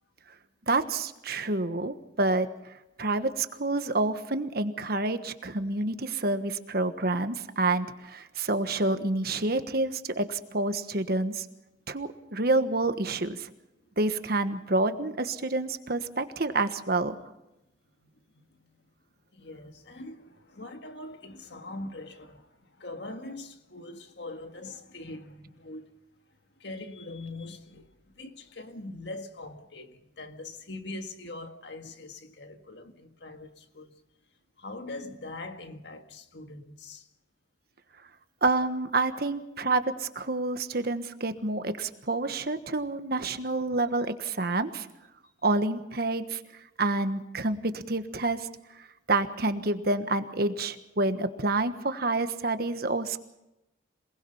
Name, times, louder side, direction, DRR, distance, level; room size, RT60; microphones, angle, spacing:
voice 1, 0.7-11.5 11.9-13.5 14.0-17.2 38.4-44.9 45.4-46.4 46.8-48.5 48.8-53.2, right 2 dB, 55° right, 1.3 m, -28 dB
voice 2, 18.0-18.8 19.3-25.9 26.6-34.0 34.6-37.1, left 2 dB, 65° left, 1.8 m, -42 dB
27.0 x 19.5 x 5.7 m
head